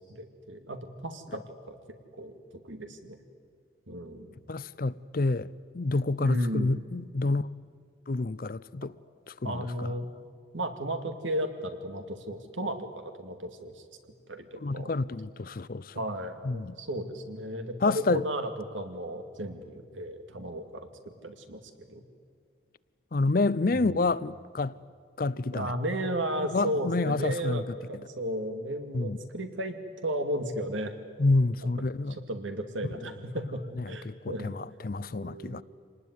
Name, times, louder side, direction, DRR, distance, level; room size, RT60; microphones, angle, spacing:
voice 1, 0.1-1.8 2.1-2.3 2.6-3.2 3.9-4.3 6.2-6.7 9.4-10.1 10.5-13.8 14.3-14.9 15.9-20.9 21.2-21.6 21.9-22.0 23.7-24.1 25.5-30.9 31.6-31.7 32.1-34.5 35.1-35.6, equal, 85° right, 2.4 m, -34 dB
voice 2, 4.5-5.5 5.7-7.5 8.1-8.9 9.3-9.9 14.6-15.9 16.4-16.8 17.8-18.2 23.1-24.8 25.2-25.7 26.4-27.6 28.9-29.2 31.2-32.2 33.8-35.6, left 3 dB, 45° left, 0.5 m, -28 dB
26.5 x 19.5 x 9.6 m
head